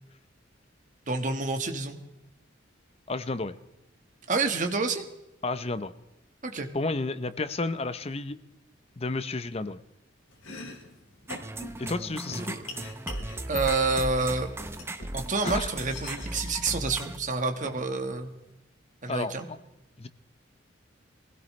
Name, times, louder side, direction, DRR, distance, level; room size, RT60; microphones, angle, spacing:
voice 1, 1.1-2.0 4.3-5.0 6.4-6.7 12.3-12.6 13.5-14.5 15.1-18.3 19.0-19.5, right 3 dB, 40° right, 6 dB, 1.5 m, -28 dB
voice 2, 3.1-3.5 5.4-5.9 6.7-8.4 9.0-9.8 11.8-12.5 15.4-15.7 19.1-19.3 20.0-20.1, left 3 dB, 30° left, 13 dB, 0.7 m, -31 dB
Domestic sounds home sounds, 10.3-18.5, left 3 dB, 85° left, 3.0 m, -45 dB
sound 1, 11.3-17.2, right 1 dB, 10° right, 0.7 m, -36 dB
23.0 x 16.5 x 3.2 m, 0.95 s
head